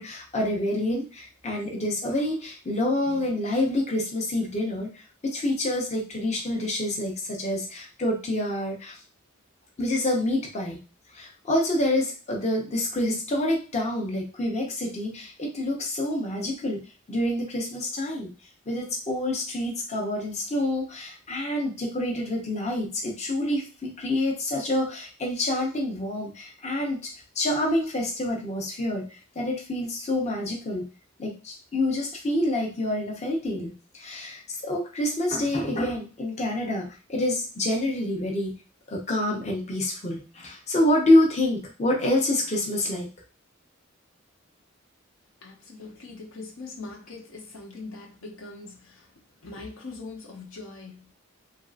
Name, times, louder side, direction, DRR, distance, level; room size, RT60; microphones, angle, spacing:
voice 1, 0.0-9.0 9.8-10.8 11.1-16.8 17.1-18.3 18.7-30.9 31.2-38.6 38.9-43.1, left 1 dB, 35° left, 0 dB, 0.6 m, -27 dB
voice 2, 45.4-51.1, left 3 dB, 80° left, 1 dB, 0.8 m, -42 dB
3.0 x 2.6 x 2.4 m, 0.33 s
head